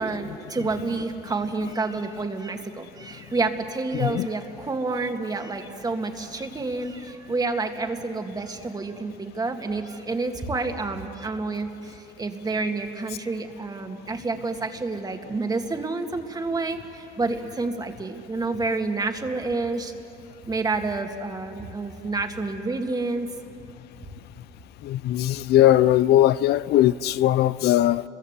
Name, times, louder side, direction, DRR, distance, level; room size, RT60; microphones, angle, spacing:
voice 1, 0.0-19.9 20.4-23.3, right 3 dB, 20° right, 2.1 m, -29 dB
voice 2, 3.9-4.3 24.8-28.0, left 13 dB, 75° left, 0.5 m, -19 dB
29.5 x 22.5 x 8.2 m
cardioid pair, 110°, 17 cm